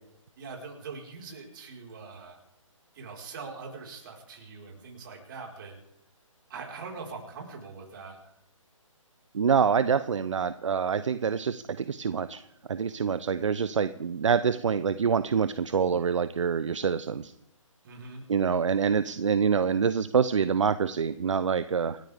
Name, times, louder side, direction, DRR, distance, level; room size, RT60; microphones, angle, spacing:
voice 1, 0.4-2.4 2.9-5.7 6.5-8.3 17.8-18.2, right 4 dB, 40° right, 0 dB, 4.9 m, -42 dB
voice 2, 9.3-12.4 12.7-17.3 18.3-22.0, right 6 dB, 65° right, 14 dB, 0.8 m, -26 dB
28.5 x 13.5 x 3.6 m, 0.77 s
figure-of-eight pair, 150°, 17 cm